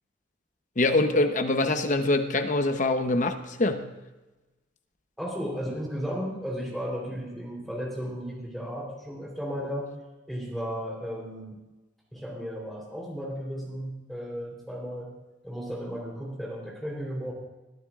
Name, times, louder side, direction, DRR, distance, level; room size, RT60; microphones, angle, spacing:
voice 1, 0.8-3.9, left 2 dB, 40° left, 7 dB, 0.9 m, -24 dB
voice 2, 5.2-9.9 10.3-11.6 12.1-15.1 15.4-17.3, equal, ahead, -2 dB, 3.6 m, -34 dB
21.5 x 13.5 x 2.5 m, 1.1 s
head